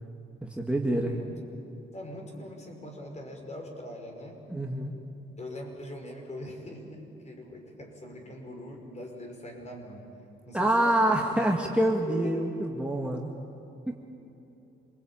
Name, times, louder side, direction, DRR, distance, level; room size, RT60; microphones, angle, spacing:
voice 1, 0.4-1.1 4.5-4.9 10.5-13.3 13.9-14.0, right 1 dB, 5° right, 0 dB, 2.1 m, -26 dB
voice 2, 1.0-1.3 1.9-4.4 5.4-10.1 10.4-11.2 12.1-12.4, left 1 dB, 35° left, 2 dB, 5.5 m, -42 dB
27.0 x 20.5 x 8.9 m, 2.8 s
cardioid pair, 90°, 20 cm